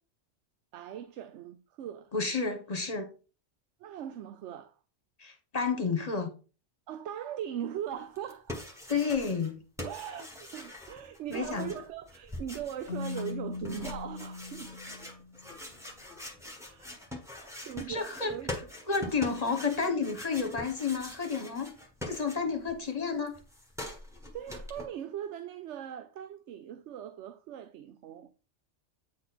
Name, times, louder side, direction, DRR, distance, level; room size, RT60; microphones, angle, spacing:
voice 1, 0.7-2.1 3.8-4.8 6.9-8.6 9.8-14.7 16.6-17.0 17.6-18.5 24.3-28.3, right 10 dB, 90° right, 0.9 m, -40 dB
voice 2, 2.1-3.1 5.2-6.3 8.9-9.6 11.3-11.7 17.9-18.3 18.9-21.7 22.1-23.3, left 5 dB, 35° left, 1.2 m, -31 dB
sound 1, 8.2-9.5 9.8-22.7 23.0-24.9, left 1 dB, 5° right, 1.3 m, -43 dB
Keyboard (musical), 12.9-15.6, left 3 dB, 70° left, 0.9 m, -40 dB
8.7 x 4.1 x 4.1 m
omnidirectional pair, 1.2 m